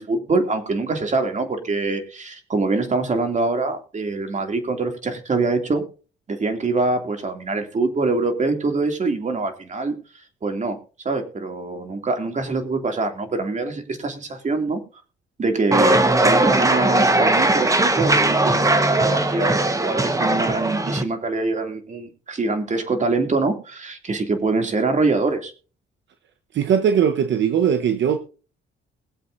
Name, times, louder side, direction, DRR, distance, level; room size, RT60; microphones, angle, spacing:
voice 1, 0.0-5.8 6.3-9.9 10.4-10.8 11.0-14.8 15.4-25.5, right 3 dB, 35° right, 2.8 m, -24 dB
sound 1, 15.7-21.0, right 2 dB, 15° right, 1.4 m, -19 dB
voice 2, 26.5-28.2, right 8 dB, 65° right, 1.1 m, -19 dB
21.5 x 7.7 x 2.7 m
cardioid pair, 90°, 20 cm